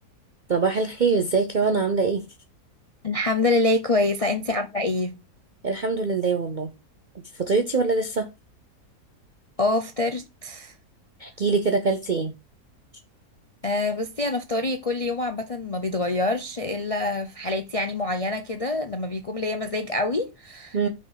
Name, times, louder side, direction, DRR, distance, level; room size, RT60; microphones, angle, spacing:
voice 1, 0.5-2.2 5.6-6.7 7.4-8.3 11.2-12.3 20.7-20.9, right 4 dB, 50° right, 0.5 m, -23 dB
voice 2, 3.0-5.1 9.6-10.7 13.6-20.9, left 2 dB, 45° left, 0.4 m, -26 dB
5.9 x 4.5 x 5.6 m
omnidirectional pair, 1.7 m